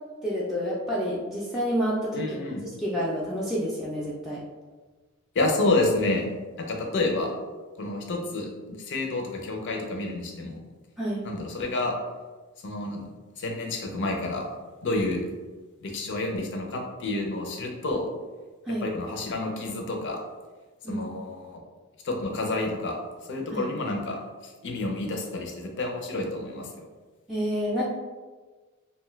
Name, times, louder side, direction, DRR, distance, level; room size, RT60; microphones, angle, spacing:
voice 1, 0.2-2.2 2.8-4.4 11.0-11.2 18.7-18.9 20.8-21.0 23.5-23.7 27.3-27.9, equal, ahead, -7 dB, 0.3 m, -28 dB
voice 2, 2.1-2.6 5.3-6.3 6.6-7.3 7.8-10.6 11.2-11.9 12.6-13.0 13.4-14.4 14.8-15.3 15.8-18.1 18.8-20.2 20.9-21.6 22.0-23.0 23.3-24.2 24.4-26.7, left 2 dB, 55° left, 2 dB, 0.5 m, -29 dB
2.6 x 2.2 x 3.1 m, 1.3 s
head